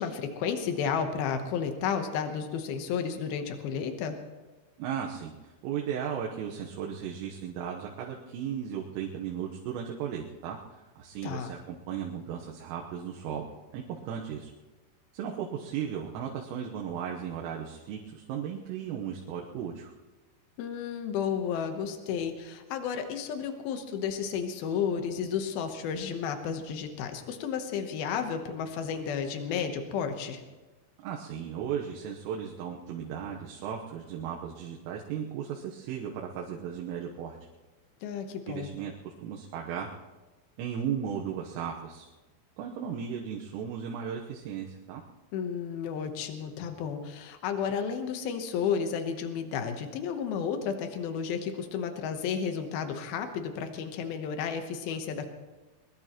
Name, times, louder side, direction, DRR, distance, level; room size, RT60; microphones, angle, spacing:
voice 1, 0.0-4.2 11.2-11.5 20.6-30.4 38.0-38.7 45.3-55.3, left 7 dB, 85° left, 6 dB, 2.1 m, -32 dB
voice 2, 4.8-13.5 13.7-14.5 15.1-19.9 31.0-37.4 38.5-39.9 40.6-42.1 42.6-45.0, right 8 dB, 80° right, -1 dB, 3.7 m, -36 dB
22.0 x 21.0 x 3.0 m, 1.2 s
omnidirectional pair, 6.0 m